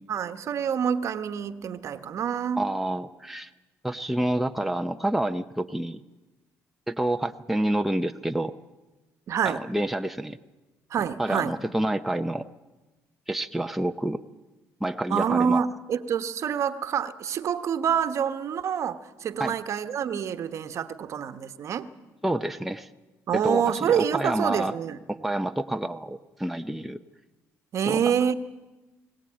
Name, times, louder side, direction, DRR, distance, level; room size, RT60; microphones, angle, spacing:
voice 1, 0.1-2.7 9.3-9.6 10.9-11.5 15.1-21.9 23.3-25.0 27.7-28.3, right 8 dB, 55° right, 10 dB, 1.2 m, -27 dB
voice 2, 2.6-3.5 3.8-6.0 6.9-8.5 9.4-10.4 11.2-12.5 13.3-14.2 14.8-15.6 19.4-19.5 22.2-22.9 23.3-24.7 25.1-27.0 27.9-28.1, right 1 dB, 5° right, 6 dB, 0.7 m, -28 dB
20.5 x 18.5 x 8.8 m, 1.1 s
cardioid pair, 95°, 6 cm